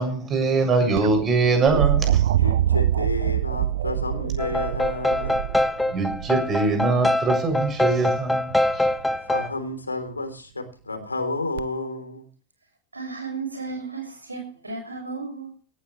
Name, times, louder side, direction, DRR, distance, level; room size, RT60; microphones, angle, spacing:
voice 1, 0.0-2.3 5.9-8.8, right 3 dB, 25° right, 7.4 m, -23 dB
sound 1, 1.0-6.9 8.5-9.0 11.6-11.7, right 11 dB, 60° right, 0.6 m, -24 dB
voice 2, 2.4-5.5 9.3-12.3, left 2 dB, 80° left, 3.5 m, -31 dB
sound 2, 4.4-9.5, left 1 dB, 5° left, 1.5 m, -24 dB
voice 3, 12.9-15.5, right 4 dB, 80° right, 6.4 m, -34 dB
18.5 x 14.5 x 3.3 m
figure-of-eight pair, 90°, 0 cm